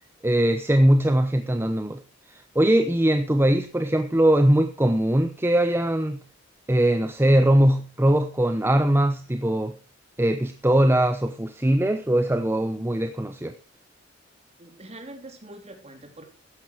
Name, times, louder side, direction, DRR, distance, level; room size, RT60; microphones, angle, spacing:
voice 1, 0.2-2.0 2.3-6.2 6.7-9.8 10.2-13.5, right 1 dB, 10° right, 0.8 m, -21 dB
voice 2, 14.6-16.2, right 1 dB, 35° right, 3.3 m, -43 dB
13.5 x 10.5 x 4.6 m
head